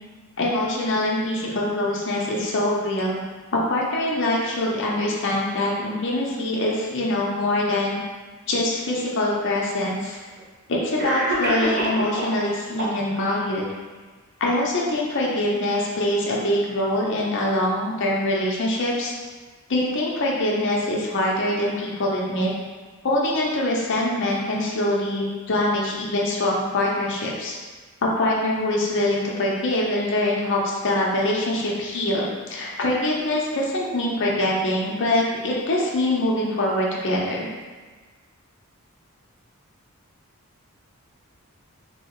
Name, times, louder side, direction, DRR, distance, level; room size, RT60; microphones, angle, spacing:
voice 1, 0.4-3.2 3.5-8.0 8.5-10.2 10.7-13.6 14.4-19.1 19.7-22.5 23.0-27.5 28.0-37.5, left 1 dB, 55° left, -3 dB, 0.6 m, -24 dB
Cough, 9.3-9.4 10.4-10.5 11.0-12.4 12.8-13.4, right 1 dB, 45° right, 0.6 m, -26 dB
3.0 x 2.8 x 3.0 m, 1.4 s
head